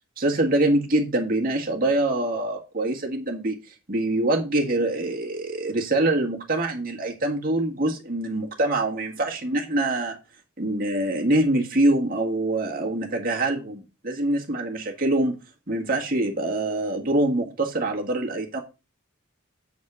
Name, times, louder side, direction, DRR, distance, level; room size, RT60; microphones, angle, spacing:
voice 1, 0.2-10.2 10.6-15.3 15.7-18.6, right 1 dB, 40° right, 1.7 m, -24 dB
8.3 x 4.2 x 6.1 m
head